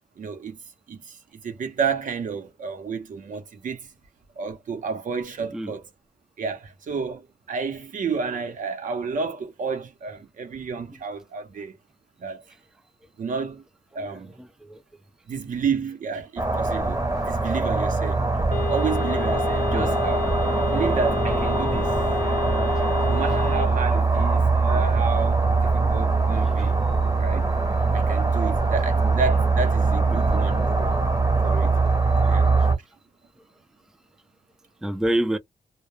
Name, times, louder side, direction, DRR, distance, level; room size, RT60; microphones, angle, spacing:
voice 1, 0.2-0.6 0.9-3.9 4.4-5.9 6.4-11.8 12.2-12.4 13.2-13.6 13.9-14.4 15.3-18.2 18.7-20.3 20.7-22.0 23.1-26.8 27.2-27.5 27.9-30.9 31.4-31.8 32.3-32.5, right 5 dB, 70° right, 0.8 m, -31 dB
voice 2, 14.4-14.8 19.7-19.9 24.7-24.8 26.3-26.6 30.1-30.2 32.1-32.4 34.8-35.4, right 1 dB, 5° right, 0.4 m, -28 dB
sound 1, 16.4-32.8, right 3 dB, 25° right, 0.8 m, -22 dB
sound 2, 18.5-23.7, left 8 dB, 70° left, 0.6 m, -31 dB
2.2 x 2.1 x 3.0 m
cardioid pair, 100°, 14 cm